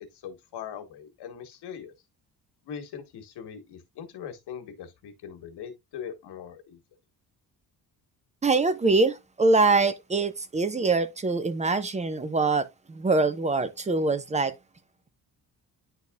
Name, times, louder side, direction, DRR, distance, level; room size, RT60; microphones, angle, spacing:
voice 1, 0.2-1.9 2.6-6.8, left 8 dB, 90° left, 1.6 m, -41 dB
voice 2, 8.4-14.5, right 3 dB, 20° right, 0.7 m, -24 dB
10.5 x 4.1 x 2.4 m
cardioid pair, 140°, 39 cm